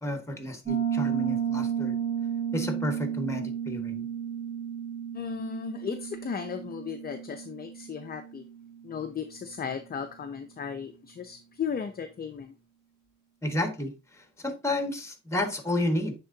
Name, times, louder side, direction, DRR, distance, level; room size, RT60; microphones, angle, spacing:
voice 1, 0.0-2.0 2.5-4.1 13.4-13.9 14.4-16.1, left 1 dB, 10° left, 6 dB, 1.5 m, -31 dB
Piano, 0.7-9.2, right 8 dB, 25° right, 3.1 m, -33 dB
voice 2, 5.1-8.5 8.8-12.5, left 7 dB, 30° left, 6 dB, 0.6 m, -36 dB
9.5 x 3.7 x 2.7 m, 0.29 s
cardioid pair, 90°, 30 cm